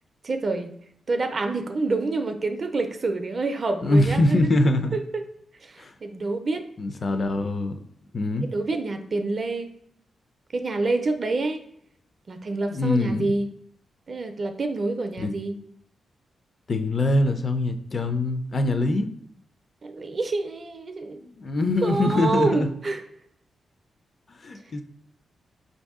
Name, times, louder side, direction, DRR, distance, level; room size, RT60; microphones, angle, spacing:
voice 1, 0.2-0.7 1.1-4.5 4.9-5.2 5.6-6.6 8.4-9.7 10.5-11.6 12.3-13.5 14.1-15.6 19.8-21.2 21.8-23.0, right 3 dB, 40° right, 7 dB, 0.4 m, -27 dB
voice 2, 3.8-5.0 5.8-5.9 6.8-7.8 8.1-8.5 12.7-13.3 15.2-15.3 16.7-19.1 21.1-22.7 24.3-24.8, left 2 dB, 40° left, 8 dB, 0.4 m, -23 dB
4.6 x 2.6 x 3.5 m, 0.70 s
wide cardioid pair, 115°, 0 cm